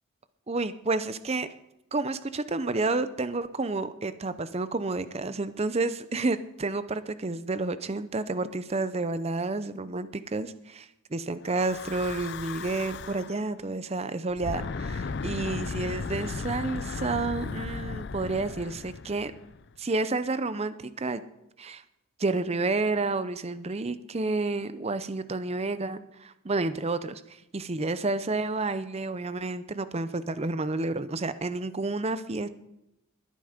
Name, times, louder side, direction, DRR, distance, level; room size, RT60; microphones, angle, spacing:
voice 1, 0.5-1.5 1.9-19.3 19.8-21.2 21.6-21.8 22.2-27.2 27.5-32.5, right 3 dB, 30° right, 13 dB, 0.6 m, -30 dB
Breathing / Wind, 11.4-13.4 14.3-19.7, left 4 dB, 55° left, 0.5 m, -36 dB
20.5 x 9.2 x 5.1 m, 0.89 s
head